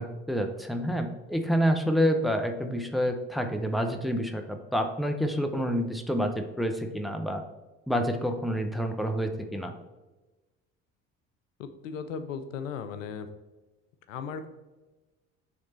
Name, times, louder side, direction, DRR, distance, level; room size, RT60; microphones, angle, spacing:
voice 1, 0.0-7.4 7.9-9.7, equal, ahead, 5 dB, 0.8 m, -28 dB
voice 2, 11.6-13.3 14.1-14.5, left 6 dB, 85° left, 9 dB, 0.6 m, -36 dB
6.9 x 3.4 x 4.4 m, 1.2 s
hypercardioid pair, 55°, 37 cm